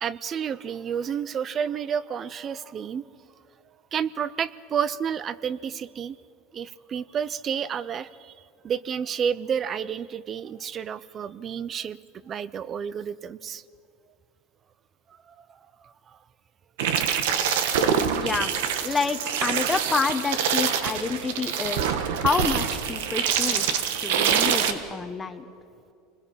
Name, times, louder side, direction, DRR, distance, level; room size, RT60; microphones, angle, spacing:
voice 1, 0.0-3.1 3.9-6.2 6.5-8.3 8.6-12.0 12.2-13.6 15.4-15.5 15.8-16.2, right 7 dB, 35° right, 18 dB, 0.6 m, -30 dB
sound 1, 16.8-24.7, right 8 dB, 85° right, 1.4 m, -25 dB
voice 2, 18.2-18.5 18.8-25.4, left 4 dB, 15° left, 7 dB, 1.1 m, -28 dB
27.5 x 21.0 x 5.6 m, 2.4 s
supercardioid pair, 125°, 0 cm